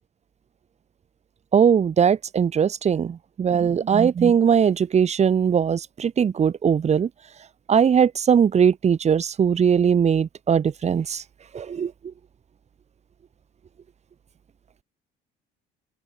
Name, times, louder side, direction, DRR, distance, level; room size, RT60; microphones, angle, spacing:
voice 1, 1.5-7.1 7.7-11.2 11.5-11.9, right 7 dB, 40° right, 7.9 m, -20 dB
open air
cardioid pair, 105°, 17 cm